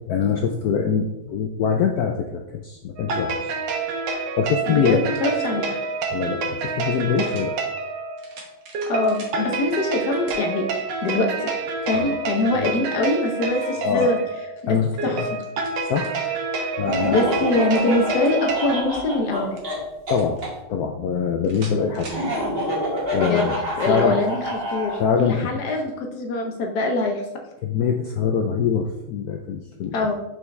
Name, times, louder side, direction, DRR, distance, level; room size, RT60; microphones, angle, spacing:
voice 1, 0.1-3.5 4.4-5.0 6.1-7.6 11.9-12.2 12.6-12.8 13.8-14.1 14.7-15.3 15.9-16.2 16.8-17.4 20.1-20.4 20.7-22.1 23.1-24.3 25.0-25.6 27.6-30.1, left 6 dB, 75° left, 3 dB, 0.8 m, -24 dB
sound 1, 3.0-18.8, right 4 dB, 70° right, 1.5 m, -28 dB
voice 2, 4.6-5.7 8.9-11.5 11.8-14.2 14.6-15.3 17.1-19.6 23.1-23.5 23.8-27.2 29.9-30.1, left 2 dB, 60° left, 3 dB, 1.2 m, -23 dB
sound 2, 6.0-6.1 7.2-7.5 8.2-9.4 10.3-10.5 11.0-11.1 13.0-13.8 15.1-16.3 17.5-18.5 19.6-20.5 21.4-22.3, right 3 dB, 85° right, 2.0 m, -44 dB
Laughter, 16.8-20.5 22.0-25.0, equal, 30° right, 1.9 m, -27 dB
5.9 x 5.5 x 3.2 m, 0.89 s
omnidirectional pair, 2.2 m